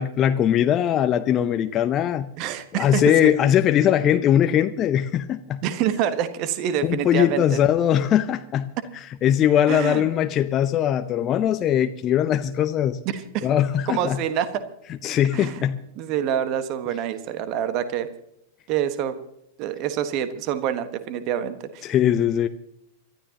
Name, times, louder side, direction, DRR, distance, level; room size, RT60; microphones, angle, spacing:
voice 1, 0.0-2.3 2.8-5.6 6.8-8.7 9.2-13.0 13.4-14.2 15.0-15.8 21.8-22.5, left 10 dB, 30° left, 0.7 m, -20 dB
voice 2, 2.4-3.3 5.6-7.6 9.7-10.1 13.0-13.5 13.9-14.6 15.3-15.7 16.0-18.1 18.7-19.1 19.6-21.8, right 10 dB, 40° right, 1.4 m, -26 dB
27.5 x 13.0 x 2.9 m
figure-of-eight pair, 95°, 0 cm